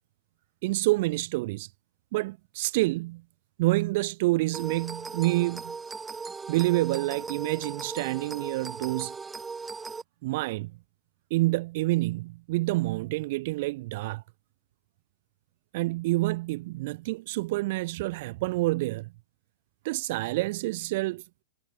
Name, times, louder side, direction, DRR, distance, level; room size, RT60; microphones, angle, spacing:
voice 1, 0.6-1.7 2.1-3.2 3.6-5.8 6.5-9.1 10.2-10.7 11.3-14.2 15.7-19.1 19.8-21.2, right 20 dB, 50° right, 0.9 m, -28 dB
sound 1, 4.5-10.0, right 4 dB, 15° right, 1.5 m, -38 dB
hypercardioid pair, 105°, 0 cm